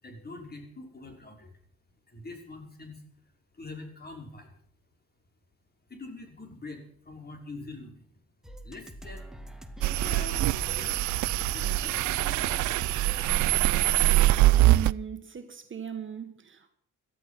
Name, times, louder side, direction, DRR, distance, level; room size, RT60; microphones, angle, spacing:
voice 1, 0.0-1.5 2.1-4.5 5.9-8.1 8.6-9.3 10.0-11.0 11.5-12.0 13.7-13.8, left 3 dB, 30° left, 5.8 m, -44 dB
sound 1, 8.4-13.5, right 1 dB, ahead, 2.1 m, -44 dB
sound 2, 9.8-14.9, right 16 dB, 75° right, 0.6 m, -24 dB
voice 2, 14.6-16.7, right 8 dB, 40° right, 1.8 m, -37 dB
17.5 x 13.0 x 6.0 m
cardioid pair, 90°, 30 cm